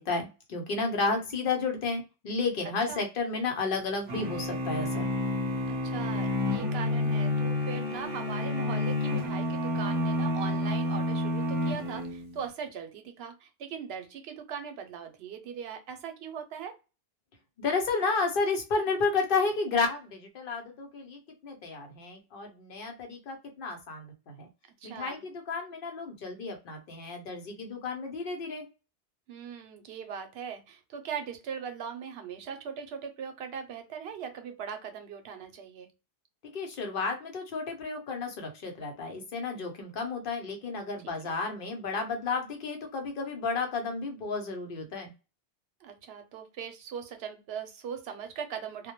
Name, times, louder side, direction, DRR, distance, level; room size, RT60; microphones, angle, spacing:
voice 1, 0.0-5.1 17.6-24.5 24.8-28.6 36.5-45.1, left 4 dB, 60° left, 3 dB, 0.8 m, -32 dB
voice 2, 1.0-1.4 2.6-3.1 5.7-16.8 24.8-25.3 29.3-35.9 41.0-41.3 45.8-48.9, right 7 dB, 80° right, 6 dB, 0.8 m, -40 dB
sound 1, 4.1-12.4, left 2 dB, 30° right, 0.7 m, -30 dB
2.2 x 2.1 x 2.8 m, 0.30 s
omnidirectional pair, 1.1 m